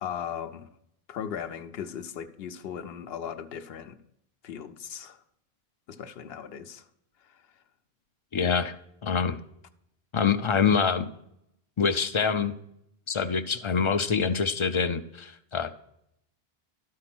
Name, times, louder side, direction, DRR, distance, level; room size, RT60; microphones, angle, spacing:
voice 1, 0.0-0.7 1.1-4.0 4.4-5.2 5.9-6.8, left 8 dB, 75° left, 0.9 m, -37 dB
voice 2, 8.3-9.4 10.1-11.1 11.8-12.5 13.1-15.7, left 6 dB, 50° left, 0.3 m, -25 dB
12.5 x 4.7 x 6.0 m
omnidirectional pair, 1.0 m